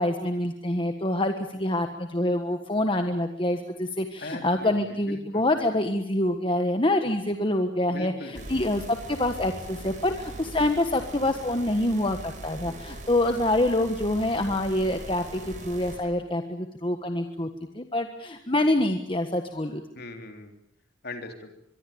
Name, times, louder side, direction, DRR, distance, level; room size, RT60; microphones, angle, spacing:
voice 1, 0.0-8.1 8.5-17.5 17.7-19.8, left 1 dB, 25° left, 6 dB, 1.5 m, -26 dB
voice 2, 4.2-4.7 5.1-5.5 7.9-8.5 19.9-20.5 21.0-21.5, left 2 dB, 50° left, 5 dB, 3.6 m, -39 dB
sound 1, 8.3-16.0, right 1 dB, 40° right, 6.8 m, -41 dB
24.0 x 23.5 x 8.7 m, 0.73 s
head